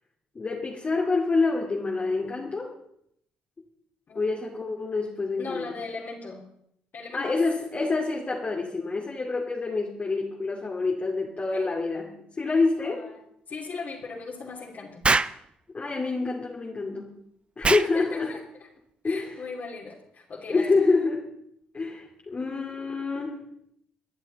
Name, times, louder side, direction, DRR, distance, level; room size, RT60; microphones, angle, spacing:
voice 1, 0.3-2.7 4.2-5.6 7.1-13.0 15.7-17.1 17.6-18.4 19.0-19.4 20.5-21.2 21.7-23.4, left 3 dB, 30° left, -2 dB, 2.4 m, -27 dB
voice 2, 5.4-6.4 6.9-7.4 11.5-11.7 12.8-13.2 13.5-15.0 17.9-18.4 19.0-20.7, left 4 dB, 50° left, -5 dB, 3.1 m, -38 dB
Explosion, 15.0-15.4 17.6-17.9, right 3 dB, 25° right, 0.6 m, -22 dB
26.5 x 10.5 x 4.1 m, 0.73 s
hypercardioid pair, 50°, 4 cm